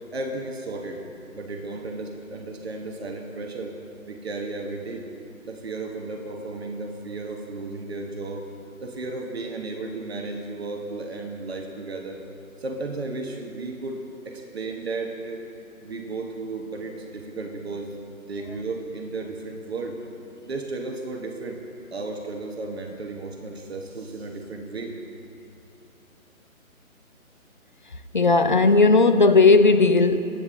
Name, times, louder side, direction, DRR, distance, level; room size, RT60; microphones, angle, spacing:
voice 1, 0.1-1.0 1.3-3.7 4.1-5.1 5.4-8.5 8.8-12.2 12.6-15.5 15.8-17.9 18.3-20.0 20.4-21.6 21.9-25.0, right 3 dB, 45° right, 2 dB, 1.3 m, -34 dB
voice 2, 28.1-30.2, left 3 dB, 35° left, 9 dB, 0.5 m, -16 dB
22.5 x 9.6 x 3.8 m, 2.7 s
figure-of-eight pair, 150°, 43 cm